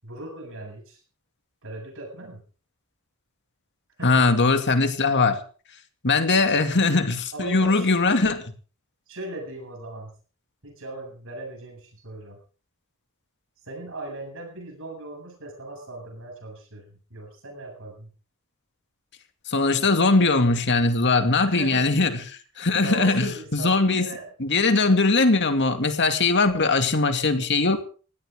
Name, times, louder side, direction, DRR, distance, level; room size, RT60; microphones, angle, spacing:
voice 1, 0.0-1.0 1.6-2.4 4.0-4.2 7.3-8.2 9.1-10.1 10.6-12.4 13.6-18.1 21.4-21.9 22.8-24.3, right 2 dB, 60° right, 2 dB, 7.9 m, -38 dB
voice 2, 4.0-5.4 6.0-8.4 19.5-24.1 24.4-27.8, left 3 dB, 55° left, 7 dB, 2.4 m, -21 dB
21.0 x 16.5 x 3.8 m, 0.38 s
head